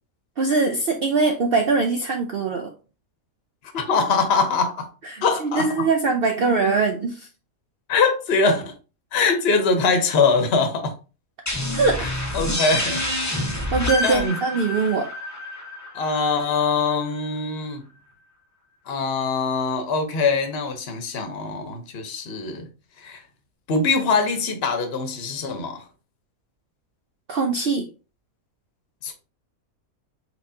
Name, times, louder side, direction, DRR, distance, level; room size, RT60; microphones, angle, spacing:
voice 1, 0.4-2.7 5.0-7.3 11.7-12.1 13.7-15.1 27.3-27.9, right 4 dB, 60° right, 0.6 m, -22 dB
voice 2, 3.7-4.9 5.2-5.9 7.9-8.7 9.1-10.9 12.3-13.0 14.0-14.4 15.9-17.9 18.9-22.7 23.0-23.2 23.7-25.8 29.0-29.1, left 4 dB, 50° left, 1.1 m, -23 dB
sound 1, 11.5-16.9, left 1 dB, 15° left, 0.7 m, -28 dB
4.5 x 4.1 x 2.7 m
omnidirectional pair, 1.5 m